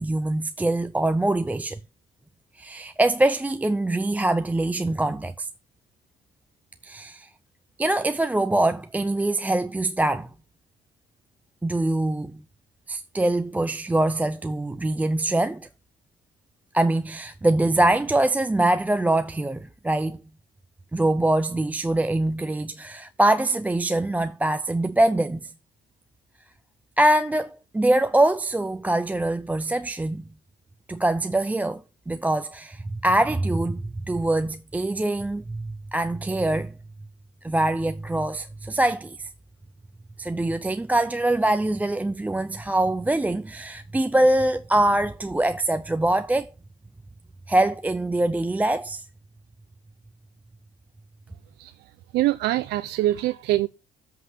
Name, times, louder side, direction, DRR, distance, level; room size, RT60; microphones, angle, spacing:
voice 1, 0.0-1.8 2.5-5.5 6.8-7.3 7.8-10.3 11.6-12.4 12.9-15.7 16.7-20.2 20.9-25.5 27.0-30.2 30.9-36.7 37.4-39.3 40.2-46.5 47.5-49.1, right 1 dB, 10° right, 0.5 m, -23 dB
voice 2, 52.1-53.7, right 15 dB, 80° right, 0.6 m, -23 dB
8.0 x 5.6 x 7.3 m
cardioid pair, 110°, 17 cm